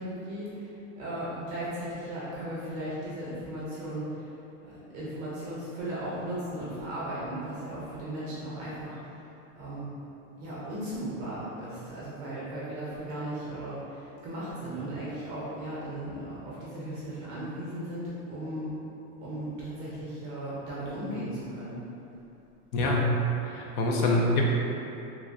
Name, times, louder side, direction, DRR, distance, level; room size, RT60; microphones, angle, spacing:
voice 1, 0.0-4.3 4.7-9.2 9.6-9.9 10.4-18.8 19.2-21.7, right 1 dB, 25° right, -8 dB, 0.4 m, -36 dB
voice 2, 22.7-23.1 23.4-24.4, left 2 dB, 70° left, -2 dB, 0.7 m, -25 dB
3.5 x 3.1 x 2.5 m, 2.9 s
supercardioid pair, 155°, 46 cm